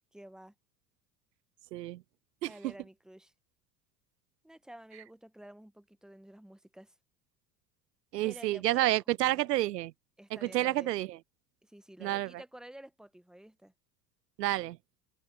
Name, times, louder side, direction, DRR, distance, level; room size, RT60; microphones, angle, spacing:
voice 1, 0.1-0.5 2.4-3.3 4.4-7.0 8.2-8.9 9.2-9.5 10.2-10.9 11.6-13.7, right 1 dB, ahead, 1.1 m, -51 dB
voice 2, 1.7-2.0 2.4-2.7 8.1-9.9 10.3-11.2 12.0-12.3 14.4-14.8, right 16 dB, 75° right, 0.6 m, -29 dB
open air
figure-of-eight pair, 70°, 50 cm